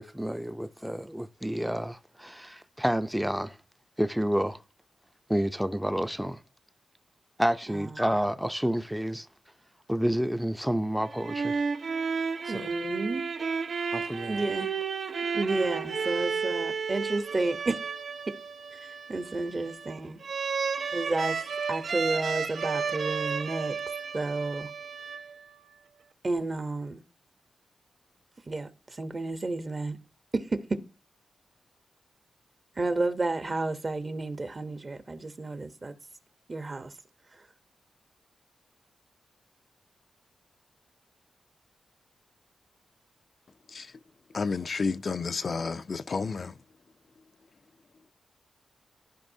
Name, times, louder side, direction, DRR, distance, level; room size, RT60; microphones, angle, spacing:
voice 1, 0.0-3.6 4.0-4.6 5.3-6.4 7.4-9.3 9.9-11.6 12.4-12.6 13.9-14.4, equal, 5° right, 0.5 m, -29 dB
voice 2, 7.7-8.0 12.5-13.2 14.3-14.7 15.3-17.8 18.8-20.2 20.9-21.4 21.7-23.8 24.1-24.7 26.2-27.0 28.5-30.0 30.3-30.6 32.8-35.9 36.5-36.9 37.3-37.4, right 2 dB, 35° right, 0.9 m, -31 dB
sound 1, 11.0-25.6, right 5 dB, 60° right, 0.5 m, -32 dB
voice 3, 44.3-46.5, left 4 dB, 55° left, 0.4 m, -31 dB
14.0 x 4.9 x 2.7 m
cardioid pair, 80°, 0 cm